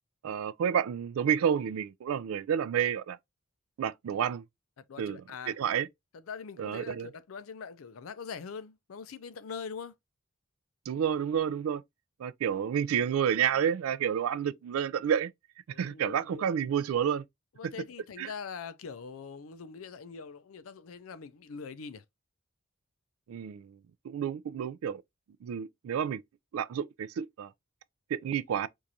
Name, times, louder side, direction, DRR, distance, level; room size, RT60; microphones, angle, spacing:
voice 1, 0.2-3.2 3.8-4.4 5.0-5.2 5.5-5.9 6.6-7.1 10.9-11.8 12.2-15.3 15.8-17.2 18.2-18.3 23.3-23.8 24.0-25.0 25.4-26.2 26.5-27.5 28.1-28.7, right 8 dB, 85° right, 0.3 m, -30 dB
voice 2, 4.8-5.6 6.1-9.9 15.7-16.5 17.5-22.0, left 6 dB, 80° left, 0.5 m, -43 dB
4.6 x 2.5 x 2.7 m
head